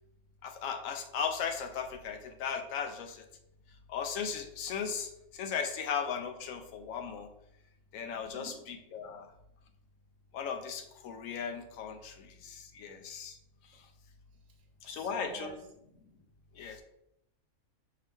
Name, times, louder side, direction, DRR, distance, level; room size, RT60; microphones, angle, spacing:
voice 1, 0.4-3.2 3.9-7.3 7.9-9.3 10.3-13.4 13.7-13.9 14.8-15.5 16.5-16.8, left 7 dB, 85° left, 1.0 m, -37 dB
voice 2, 8.1-8.7 12.2-12.7 14.8-15.6, right 4 dB, 80° right, 1.1 m, -48 dB
4.7 x 2.9 x 3.4 m
omnidirectional pair, 1.3 m